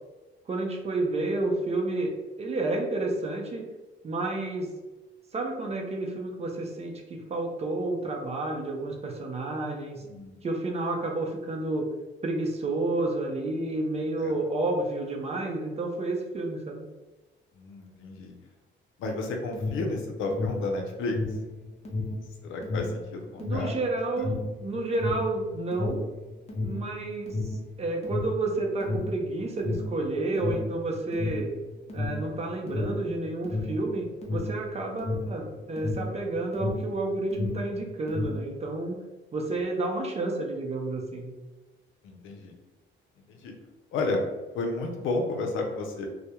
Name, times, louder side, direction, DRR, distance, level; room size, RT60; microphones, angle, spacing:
voice 1, 0.5-2.1 2.4-3.7 4.0-4.7 5.3-10.0 10.4-11.9 12.2-16.8 23.4-26.0 26.6-27.5 27.8-31.5 31.9-39.0 39.3-41.3, right 2 dB, 30° right, 1 dB, 0.5 m, -30 dB
voice 2, 10.0-10.4 14.2-14.4 17.6-18.4 19.0-21.2 22.4-23.7 24.2-24.3 26.8-26.9 42.0-42.6 43.3-43.5 43.9-44.2 44.5-46.1, left 3 dB, 85° left, 2 dB, 0.5 m, -32 dB
Alarm, 19.4-37.0 37.2-38.5, left 2 dB, 30° left, 0.6 m, -32 dB
2.2 x 2.0 x 2.8 m, 1.2 s
cardioid pair, 90°, 20 cm